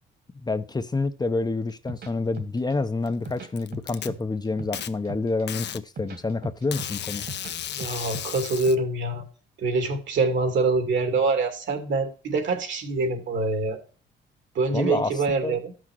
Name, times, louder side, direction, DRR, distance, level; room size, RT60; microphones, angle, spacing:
voice 1, 0.4-7.3 14.7-15.1 15.4-15.6, left 3 dB, 20° left, 0.7 m, -28 dB
sound 1, 1.7-2.7 3.1-4.2 4.5-5.4 5.8-7.5 7.8-8.7, right 2 dB, 55° right, 2.2 m, -39 dB
Packing tape duct tape, 3.1-4.1 4.7-4.9 5.5-5.8 6.7-8.7, left 10 dB, 60° left, 0.8 m, -34 dB
voice 2, 7.8-9.2 9.6-13.8 14.5-15.7, right 3 dB, 70° right, 2.6 m, -25 dB
14.0 x 6.1 x 3.0 m
cardioid pair, 90°, 20 cm